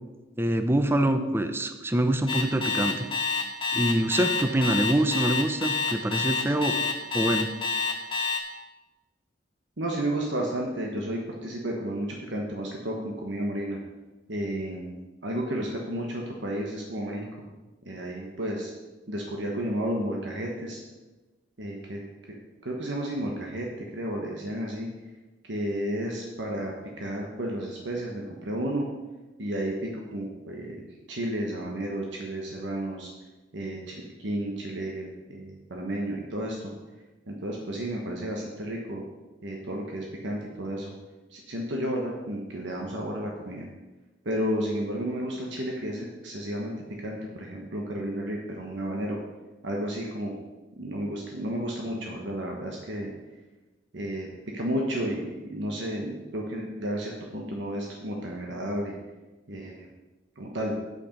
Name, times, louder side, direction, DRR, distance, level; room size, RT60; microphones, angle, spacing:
voice 1, 0.4-3.1 3.7-6.8 7.1-7.5, right 1 dB, 15° right, 8 dB, 0.5 m, -25 dB
Alarm, 2.3-8.4, left 4 dB, 25° left, 1.3 m, -27 dB
voice 2, 9.8-13.8 14.3-14.9 15.2-17.5 17.8-18.7 19.1-20.8 21.6-22.3 22.6-23.7 23.9-24.9 25.4-28.9 29.4-30.8 31.1-33.1 33.5-36.7 37.3-39.0 39.4-40.9 41.3-43.7 44.2-49.2 49.6-50.3 50.8-53.1 53.9-54.3 54.5-58.9 59.5-59.9 60.4-60.7, right 1 dB, 75° right, -1 dB, 1.2 m, -32 dB
8.8 x 8.1 x 5.3 m, 1.2 s
head